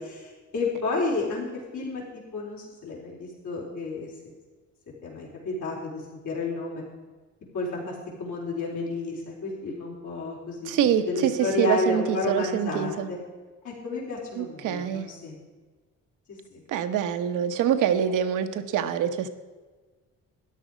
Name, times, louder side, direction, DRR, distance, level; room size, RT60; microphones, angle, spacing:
voice 1, 0.0-2.0 2.3-4.1 5.0-6.8 7.5-10.7 11.1-13.2 13.6-15.4 16.3-16.6, left 3 dB, 75° left, -4 dB, 4.3 m, -31 dB
voice 2, 10.7-13.1 14.4-15.1 16.7-19.3, right 9 dB, 85° right, 9 dB, 1.0 m, -25 dB
13.5 x 11.0 x 5.1 m, 1.3 s
cardioid pair, 90°, 30 cm